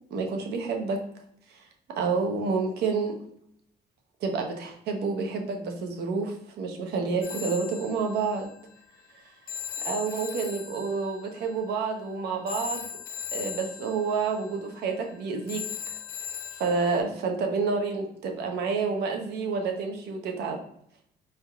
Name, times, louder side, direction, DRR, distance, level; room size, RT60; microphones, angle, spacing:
voice 1, 0.1-1.0 1.5-1.6 2.0-3.2 4.2-8.5 9.8-12.9 13.3-16.0 16.5-20.6, right 4 dB, 75° right, 3 dB, 0.9 m, -29 dB
Telephone, 7.2-17.0, left 8 dB, 65° left, 0.8 m, -39 dB
4.2 x 3.6 x 2.4 m, 0.70 s
cardioid pair, 110°, 17 cm